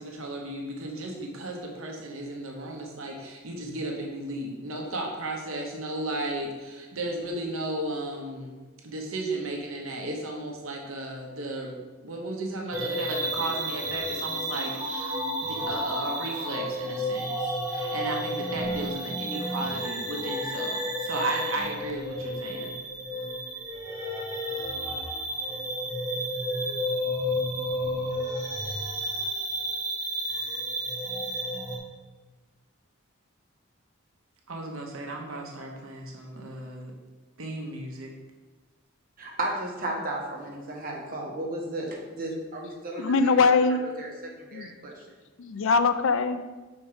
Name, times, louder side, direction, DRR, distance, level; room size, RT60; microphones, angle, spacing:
voice 1, 0.0-8.6 8.8-11.8 12.0-15.1 15.4-22.7 34.5-36.9 37.4-38.1, right 2 dB, 75° right, 0.9 m, -34 dB
sound 1, 12.7-31.8, equal, 15° right, 1.2 m, -31 dB
voice 2, 39.2-44.1 44.4-44.9, right 1 dB, 45° right, 1.3 m, -34 dB
voice 3, 43.0-43.8 44.5-44.7 45.4-46.4, left 4 dB, 65° left, 0.4 m, -22 dB
5.7 x 4.4 x 5.0 m
head